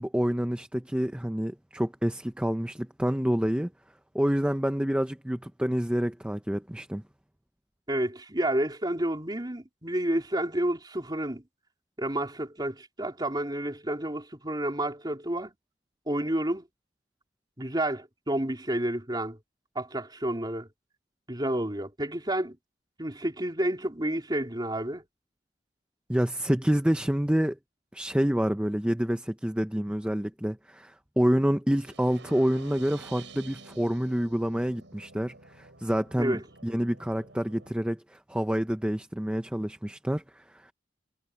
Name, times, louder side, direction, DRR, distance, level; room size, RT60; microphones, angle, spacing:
voice 1, 0.0-3.7 4.1-7.0 26.1-27.6 27.9-40.7, equal, 5° right, 0.6 m, -28 dB
voice 2, 7.9-11.4 12.0-15.5 16.1-16.6 17.6-19.4 19.7-20.7 21.3-22.6 23.0-25.0 36.2-36.4, right 1 dB, 25° right, 3.4 m, -30 dB
sound 1, 31.7-37.7, right 4 dB, 80° right, 6.2 m, -50 dB
head